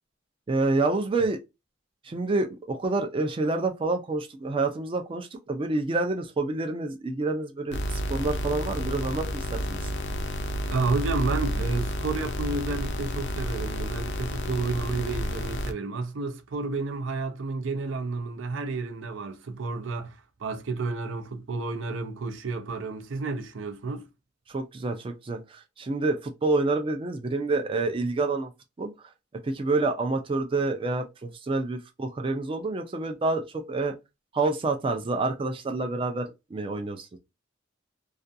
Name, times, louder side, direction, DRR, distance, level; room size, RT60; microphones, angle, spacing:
voice 1, 0.5-1.4 2.0-9.8 24.5-28.5 28.8-29.1 29.4-33.9 34.3-37.2, right 3 dB, 30° right, 0.4 m, -28 dB
sound 1, 7.7-15.7, equal, 65° left, 0.4 m, -30 dB
voice 2, 10.7-24.1, right 3 dB, 85° right, 0.5 m, -31 dB
2.4 x 2.2 x 2.5 m
head